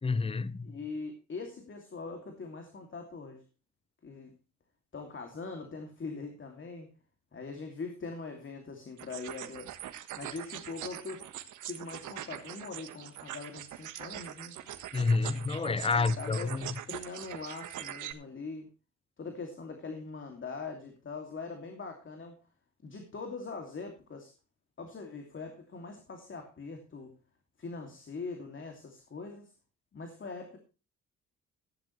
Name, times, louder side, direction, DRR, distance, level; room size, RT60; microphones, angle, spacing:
voice 1, 0.0-0.8 14.9-16.7, left 4 dB, 20° left, 0.8 m, -29 dB
voice 2, 0.6-3.4 4.0-4.3 4.9-6.9 7.3-9.7 10.2-11.3 11.6-14.5 15.8-16.5 16.9-18.7 19.2-22.4 22.8-24.3 24.8-27.1 27.6-29.5 29.9-30.6, left 4 dB, 40° left, 2.8 m, -42 dB
sound 1, 9.0-18.1, right 12 dB, 80° right, 1.5 m, -43 dB
15.5 x 10.5 x 3.3 m
cardioid pair, 90°, 30 cm